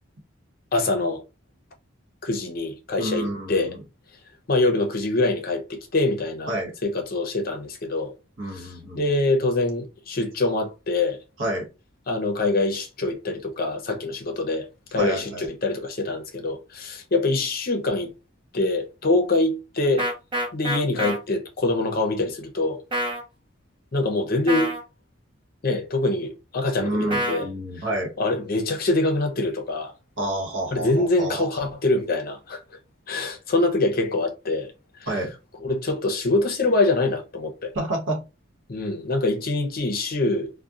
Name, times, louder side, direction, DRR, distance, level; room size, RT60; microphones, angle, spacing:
voice 1, 0.7-1.2 2.2-3.7 4.5-6.5 6.8-8.1 8.5-11.2 12.1-18.1 18.5-20.1 20.5-22.8 23.9-24.7 25.6-27.5 27.8-27.9 28.2-29.9 30.7-32.6 33.1-34.7 35.6-37.7 38.7-40.5, left 2 dB, 50° left, 0.6 m, -24 dB
voice 2, 3.0-3.8 6.5-6.7 8.4-9.0 11.4-11.7 15.0-15.5 26.8-28.1 30.2-31.4 35.1-35.3 37.7-38.3, right 1 dB, 70° right, 1.1 m, -29 dB
sound 1, 20.0-21.2 22.9-23.2 24.5-24.8 27.1-27.4, equal, 25° right, 0.6 m, -26 dB
2.8 x 2.1 x 2.3 m
head